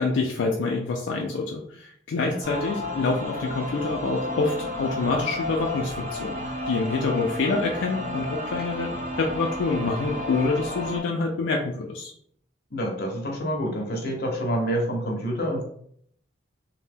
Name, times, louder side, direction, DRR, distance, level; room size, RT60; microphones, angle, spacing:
voice 1, 0.0-8.9 9.2-12.1, left 3 dB, 80° left, 0 dB, 0.4 m, -26 dB
sound 1, 2.4-11.0, left 1 dB, 40° right, 0.7 m, -32 dB
voice 2, 12.7-15.6, equal, 55° left, 0 dB, 0.7 m, -27 dB
2.7 x 2.1 x 3.3 m, 0.67 s
head